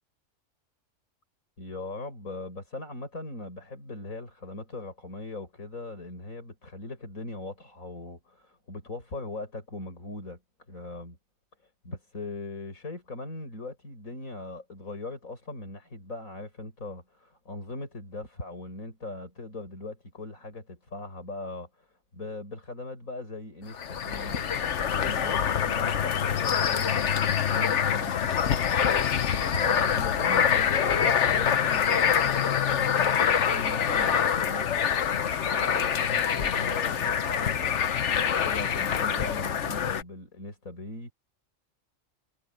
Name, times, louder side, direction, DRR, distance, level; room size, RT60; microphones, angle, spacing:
voice 1, 1.6-10.4 10.7-11.2 11.8-21.9 22.1-24.5 24.9-28.7 28.9-34.9 35.4-41.1, left 2 dB, 85° left, 6.6 m, -39 dB
sound 1, 23.7-40.0, left 8 dB, 60° left, 1.2 m, -25 dB
omnidirectional pair, 1.4 m